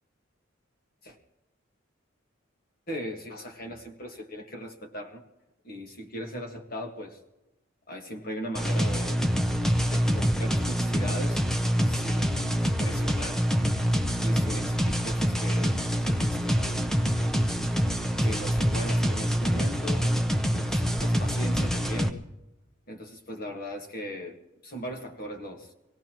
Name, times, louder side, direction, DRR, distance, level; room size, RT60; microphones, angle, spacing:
voice 1, 2.9-5.2 5.6-7.2 7.9-9.2 9.8-11.4 11.8-13.5 14.2-16.8 18.2-20.1 20.5-22.2 22.9-25.7, equal, 50° left, 3 dB, 1.7 m, -39 dB
sound 1, 8.5-22.1, equal, 5° left, 0.7 m, -26 dB
24.5 x 17.5 x 3.0 m, 0.98 s
head